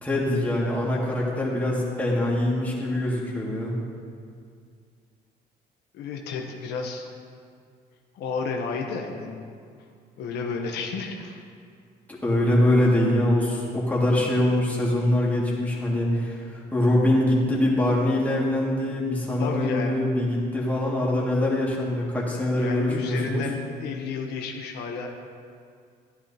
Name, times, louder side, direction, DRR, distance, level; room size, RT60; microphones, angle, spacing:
voice 1, 0.0-3.7 12.1-23.4, left 1 dB, 10° left, -5 dB, 2.1 m, -23 dB
voice 2, 5.9-7.1 8.2-9.4 10.2-11.4 12.8-13.2 15.2-15.4 19.4-20.2 22.5-25.1, left 4 dB, 80° left, 2 dB, 0.9 m, -32 dB
11.5 x 10.5 x 2.9 m, 2.2 s
cardioid pair, 110°, 17 cm